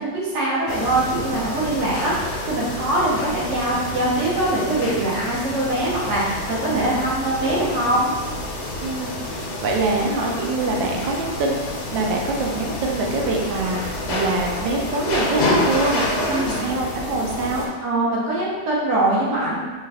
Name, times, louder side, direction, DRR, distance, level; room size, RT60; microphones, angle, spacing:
voice 1, 0.0-8.1 16.3-16.6 17.8-19.6, right 1 dB, 50° right, -6 dB, 1.0 m, -22 dB
sound 1, 0.7-17.7, left 2 dB, 85° left, 1.3 m, -28 dB
voice 2, 8.8-17.7, right 3 dB, 85° right, 0 dB, 1.3 m, -25 dB
3.5 x 2.3 x 3.3 m, 1.4 s
omnidirectional pair, 2.0 m